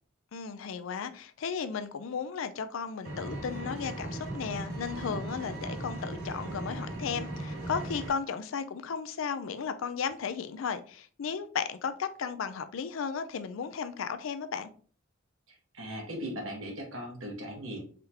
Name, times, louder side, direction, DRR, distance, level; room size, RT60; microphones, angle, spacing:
voice 1, 0.3-14.7, left 6 dB, 70° left, 11 dB, 0.4 m, -35 dB
Engine, 3.0-8.1, right 1 dB, 55° right, 1.7 m, -38 dB
voice 2, 15.5-17.8, equal, 75° right, 1 dB, 1.2 m, -38 dB
3.7 x 3.4 x 2.7 m, 0.43 s
head